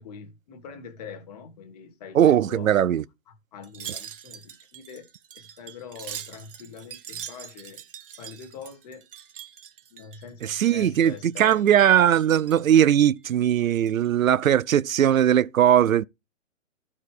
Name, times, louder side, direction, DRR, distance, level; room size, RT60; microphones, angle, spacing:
voice 1, 0.0-2.7 3.3-5.0 5.3-7.8 8.2-9.0 9.9-11.8, left 6 dB, 30° left, 1.7 m, -43 dB
voice 2, 2.1-3.0 10.5-16.0, right 10 dB, 90° right, 0.6 m, -19 dB
Wind chime, 3.6-10.7 11.0-11.8 12.2-12.7 13.2-14.1 14.5-14.6, right 9 dB, 45° right, 1.1 m, -43 dB
13.0 x 4.8 x 4.9 m
hypercardioid pair, 155°, 39 cm